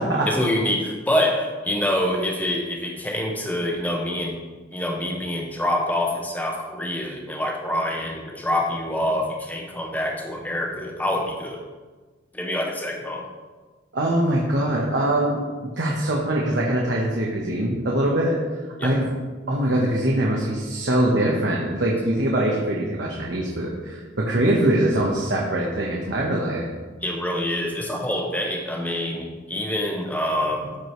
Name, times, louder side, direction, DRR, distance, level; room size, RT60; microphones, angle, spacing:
voice 1, 0.3-4.4 4.7-11.6 12.3-13.3 18.8-18.9 27.0-30.8, left 1 dB, 10° left, 0 dB, 1.0 m, -26 dB
voice 2, 13.9-18.3 18.8-19.1 19.5-26.6, right 1 dB, 65° right, -3 dB, 1.0 m, -23 dB
13.0 x 4.8 x 3.2 m, 1.4 s
head